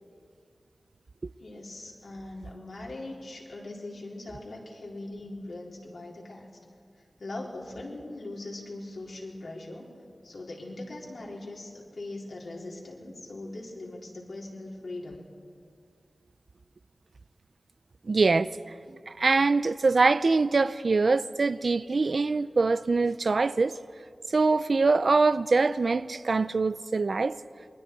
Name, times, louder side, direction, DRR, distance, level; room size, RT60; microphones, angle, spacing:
voice 1, 1.4-6.5 7.2-9.9 10.2-15.2, left 2 dB, 80° left, 4.0 m, -40 dB
voice 2, 18.1-18.5 18.9-23.8 24.3-27.4, right 3 dB, 70° right, 0.5 m, -24 dB
27.5 x 21.5 x 4.7 m
wide cardioid pair, 50°, 0 cm